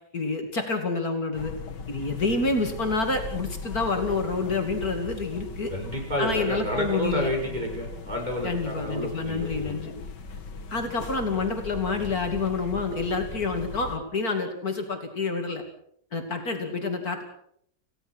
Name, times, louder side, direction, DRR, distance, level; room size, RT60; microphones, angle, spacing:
voice 1, 0.1-1.5 1.9-5.7 6.2-7.3 8.4-9.9 10.7-15.6 16.1-17.2, left 3 dB, 60° left, 4 dB, 3.0 m, -28 dB
sound 1, 1.3-14.0, left 3 dB, 85° left, 2.4 m, -39 dB
voice 2, 5.7-9.7, equal, 25° right, 1 dB, 6.2 m, -30 dB
28.0 x 16.5 x 6.3 m, 0.68 s
omnidirectional pair, 1.8 m